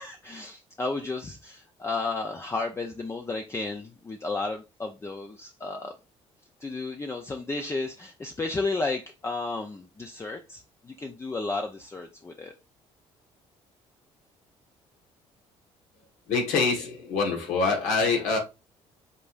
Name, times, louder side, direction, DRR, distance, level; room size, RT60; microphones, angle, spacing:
voice 1, 0.0-5.9 6.6-12.5, left 3 dB, 20° left, 0.6 m, -33 dB
voice 2, 16.3-18.4, left 4 dB, 85° left, 1.5 m, -25 dB
5.3 x 3.5 x 2.6 m
cardioid pair, 85°, 12 cm